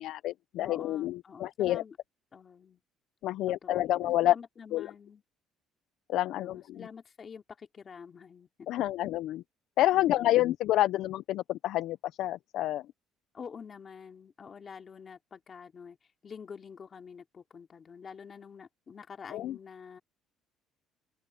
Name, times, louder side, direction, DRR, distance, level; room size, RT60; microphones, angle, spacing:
voice 1, 0.0-1.8 3.2-4.3 4.7-4.9 6.1-6.8 8.7-9.4 9.8-12.8 19.3-19.6, left 14 dB, 65° left, 0.5 m, -28 dB
voice 2, 0.6-2.0 2.3-2.8 3.5-5.2 6.3-8.7 9.9-10.5 13.3-16.0 16.2-20.0, left 6 dB, 30° left, 3.2 m, -47 dB
open air
cardioid pair, 145°, 0 cm